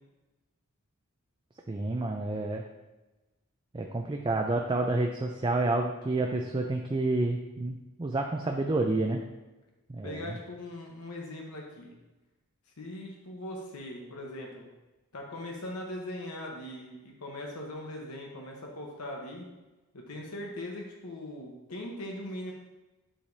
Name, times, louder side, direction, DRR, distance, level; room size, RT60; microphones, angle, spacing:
voice 1, 1.7-2.6 3.7-9.2 9.9-10.3, right 2 dB, 20° right, 2 dB, 0.4 m, -29 dB
voice 2, 10.0-11.9 12.8-14.7 15.1-19.5 19.9-22.5, left 1 dB, 90° left, 0 dB, 1.1 m, -40 dB
10.0 x 4.9 x 2.7 m, 1.1 s
head